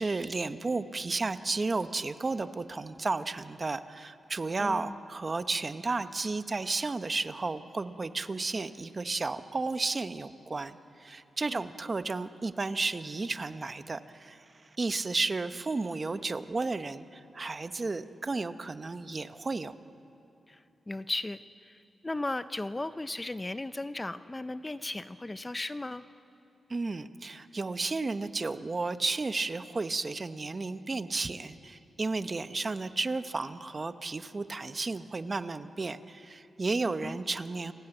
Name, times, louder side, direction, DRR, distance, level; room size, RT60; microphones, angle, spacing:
voice 1, 0.0-14.4 14.8-19.7 26.7-37.7, right 3 dB, 30° right, 11 dB, 0.9 m, -33 dB
voice 2, 4.6-5.0 11.5-11.6 20.5-21.7 22.0-26.0 37.0-37.2, left 2 dB, 15° left, 12 dB, 0.5 m, -36 dB
29.0 x 19.5 x 9.0 m, 2.9 s
wide cardioid pair, 125°, 0 cm